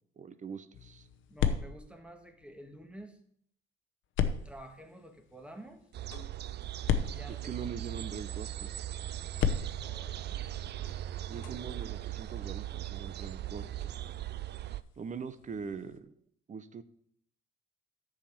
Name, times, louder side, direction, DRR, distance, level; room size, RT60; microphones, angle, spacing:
voice 1, 0.2-1.1 7.3-8.8 11.3-13.9 14.6-16.1 16.5-16.8, right 6 dB, 40° right, 13 dB, 0.8 m, -42 dB
sound 1, 0.7-3.0 4.2-8.1 9.3-16.0, left 8 dB, 75° left, 0.9 m, -37 dB
voice 2, 1.3-3.2 4.4-5.8 7.0-7.7 9.8-10.4 10.8-11.0, right 1 dB, 5° right, 4 dB, 1.6 m, -50 dB
sound 2, 5.9-14.8, right 13 dB, 60° right, 0.4 m, -39 dB
10.5 x 5.0 x 7.1 m, 0.68 s
cardioid pair, 90°, 20 cm